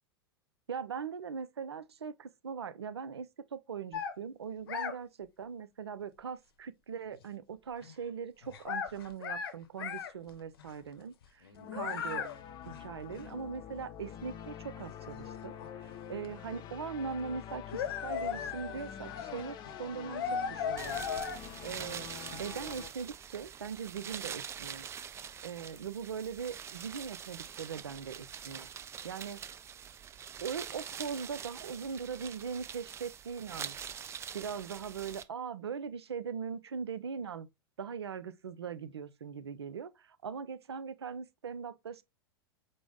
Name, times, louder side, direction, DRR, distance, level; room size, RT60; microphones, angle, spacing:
voice 1, 0.7-12.3 12.7-15.5 15.8-21.1 21.6-24.9 25.4-28.7 29.0-29.4 30.4-33.8 34.3-37.5 37.8-42.0, right 6 dB, 80° right, 0.4 m, -40 dB
sound 1, 3.9-4.2 4.7-4.9 7.8-7.9 8.4-9.5 9.8-10.1 10.6-10.7 11.5-12.4 12.7-12.8 13.1-13.2 14.2-14.3 14.8-15.9 16.2-16.3 17.3-17.4 17.7-21.4, left 7 dB, 65° left, 0.7 m, -37 dB
sound 2, 11.6-22.9, left 9 dB, 35° left, 0.5 m, -46 dB
sound 3, 20.8-35.2, right 8 dB, 20° right, 0.4 m, -44 dB
5.0 x 2.0 x 3.6 m
figure-of-eight pair, 90°, 13 cm